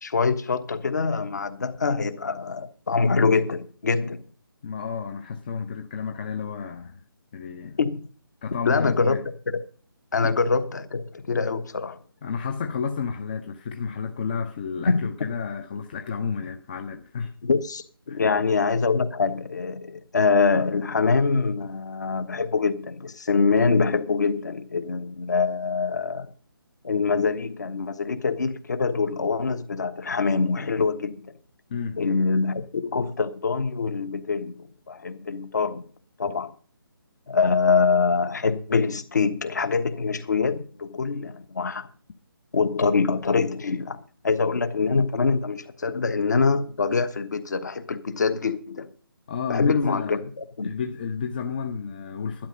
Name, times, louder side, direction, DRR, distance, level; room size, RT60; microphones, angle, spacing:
voice 1, 0.0-4.3 7.8-8.1 8.6-9.2 9.5-9.6 10.1-12.0 14.9-15.0 17.4-26.3 26.8-31.3 32.0-35.9 36.2-36.5 37.3-41.9 42.5-48.9 49.5-50.7, left 4 dB, 50° left, 1.3 m, -24 dB
voice 2, 4.6-7.0 7.3-7.8 8.4-9.2 10.2-10.3 12.2-17.3 18.1-18.2 31.7-32.0 45.9-46.0 49.3-50.2 50.6-52.5, left 6 dB, 25° left, 0.7 m, -31 dB
12.0 x 11.0 x 5.2 m
figure-of-eight pair, 150°, 12 cm